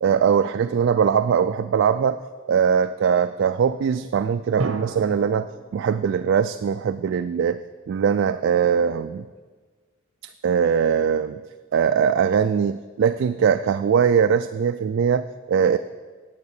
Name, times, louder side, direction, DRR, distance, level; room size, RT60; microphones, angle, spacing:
voice 1, 0.0-2.2 2.5-5.5 5.7-7.6 7.9-9.3 10.2-11.4 11.7-15.8, right 7 dB, 65° right, 10 dB, 0.3 m, -21 dB
sound 1, 4.6-7.3, right 3 dB, 85° right, 0.8 m, -35 dB
9.6 x 8.3 x 6.6 m, 1.4 s
head